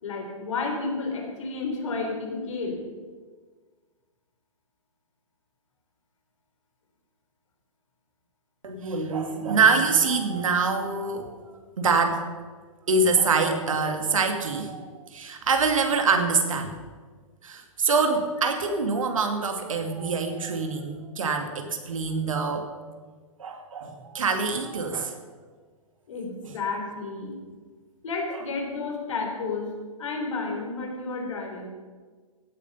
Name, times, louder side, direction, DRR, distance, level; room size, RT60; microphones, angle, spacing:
voice 1, 0.0-2.8 26.1-27.4 28.0-29.7 30.0-31.7, left 3 dB, 65° left, 3 dB, 3.5 m, -31 dB
voice 2, 8.6-12.2 12.9-16.8 17.4-22.7 23.4-25.2 26.4-26.5 28.3-28.4, right 4 dB, 70° right, 5 dB, 2.2 m, -25 dB
16.5 x 9.3 x 5.6 m, 1.5 s
figure-of-eight pair, 115°, 18 cm